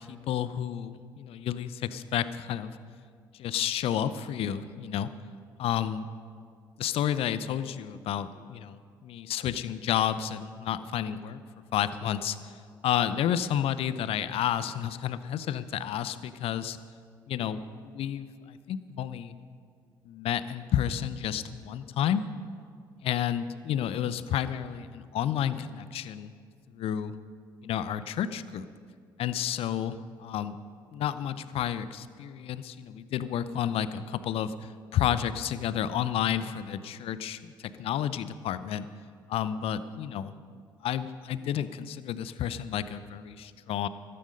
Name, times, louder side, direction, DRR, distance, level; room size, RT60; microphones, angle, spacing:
voice 1, 0.0-2.8 3.4-5.1 5.6-6.1 6.8-11.4 11.7-12.4 12.8-16.8 17.3-19.3 20.1-22.2 23.0-26.3 26.7-27.1 27.6-28.7 29.2-30.6 30.9-34.5 34.9-37.5 37.8-38.9 39.3-40.3 40.8-43.9, left 10 dB, 55° left, 14 dB, 0.7 m, -31 dB
14.5 x 14.0 x 5.3 m, 2.1 s
hypercardioid pair, 50°, 12 cm